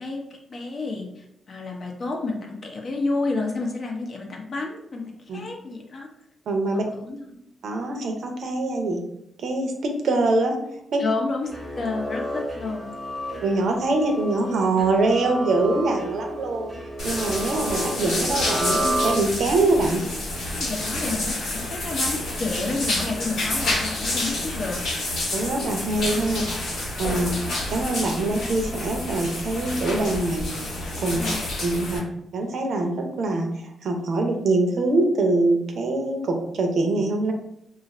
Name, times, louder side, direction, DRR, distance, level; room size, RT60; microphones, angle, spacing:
voice 1, 0.0-6.1 6.7-7.3 11.0-13.0 20.5-24.8 26.4-26.5 31.1-31.4, left 3 dB, 45° left, 1 dB, 0.7 m, -30 dB
voice 2, 6.5-6.8 7.6-9.0 9.4-10.6 10.9-11.0 13.4-16.7 17.0-20.0 25.3-26.4 27.0-27.3 27.7-30.5 31.0-31.2 31.6-32.0 32.3-37.3, right 2 dB, 65° right, 3 dB, 0.6 m, -24 dB
sound 1, 11.4-19.6, right 1 dB, ahead, 0.8 m, -31 dB
sound 2, 17.0-32.0, left 1 dB, 90° left, 1.3 m, -29 dB
2.5 x 2.4 x 4.1 m, 0.77 s
cardioid pair, 120°, 0 cm